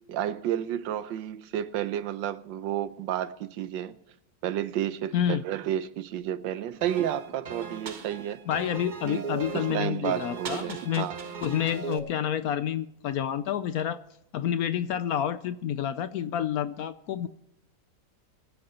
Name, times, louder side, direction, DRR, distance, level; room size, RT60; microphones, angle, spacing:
voice 1, 0.1-4.0 4.4-8.4 9.0-9.2 9.5-11.2, right 11 dB, 90° right, 1.4 m, -31 dB
voice 2, 5.1-5.4 8.5-11.1 11.4-14.0 14.3-17.3, left 9 dB, 70° left, 0.9 m, -29 dB
sound 1, 6.8-12.0, right 5 dB, 40° right, 0.7 m, -38 dB
22.0 x 8.2 x 4.3 m
omnidirectional pair, 1.9 m